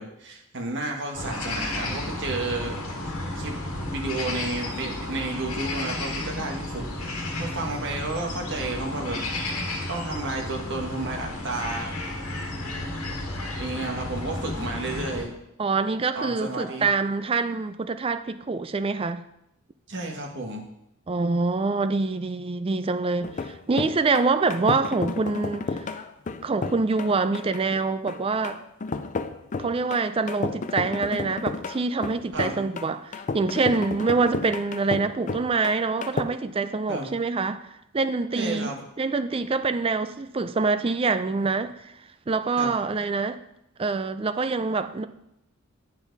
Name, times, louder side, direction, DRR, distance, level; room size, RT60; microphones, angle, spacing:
voice 1, 0.0-2.8 3.0-3.6 3.9-9.3 9.9-11.9 13.6-15.4 16.1-16.9 19.9-20.6 32.3-32.7 36.9-37.2 38.3-38.8 42.6-42.7, right 2 dB, 55° right, 1 dB, 1.5 m, -32 dB
sound 1, 1.2-15.2, left 1 dB, 80° left, 1.7 m, -32 dB
voice 2, 15.6-19.2 21.1-25.9 26.4-28.6 29.6-37.6 37.9-38.7 39.0-41.8 42.3-43.4 43.8-45.1, right 4 dB, 25° right, 10 dB, 0.4 m, -25 dB
sound 2, 23.2-36.2, left 4 dB, 35° left, 0.4 m, -32 dB
8.9 x 7.2 x 4.0 m, 0.82 s
head